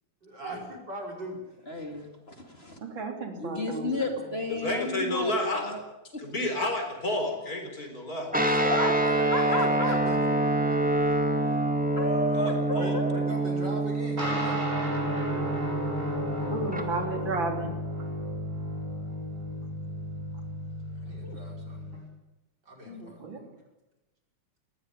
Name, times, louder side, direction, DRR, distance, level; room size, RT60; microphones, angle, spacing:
voice 1, 0.2-1.4 8.3-10.3 12.7-14.6 21.0-21.8 22.7-23.6, right 1 dB, 60° right, 1 dB, 6.1 m, -38 dB
voice 2, 1.7-2.8 3.4-5.8 6.1-6.4 8.7-8.9 9.3-10.0 12.0-13.1 16.5-16.6 21.2-21.4 22.8-23.1, left 1 dB, 30° left, 4 dB, 2.8 m, -32 dB
voice 3, 2.8-3.9 16.5-17.7 23.2-23.4, right 3 dB, 85° right, 4 dB, 3.9 m, -33 dB
voice 4, 4.5-5.8 6.2-8.3 11.0-11.1 11.3-11.5 12.3-13.0, left 1 dB, 50° left, 4 dB, 4.9 m, -31 dB
Guitar, 8.3-16.8, right 2 dB, 5° right, 2.1 m, -26 dB
sound 1, 14.2-22.0, left 1 dB, 40° right, 6.5 m, -34 dB
20.0 x 16.5 x 10.0 m, 0.99 s
omnidirectional pair, 2.1 m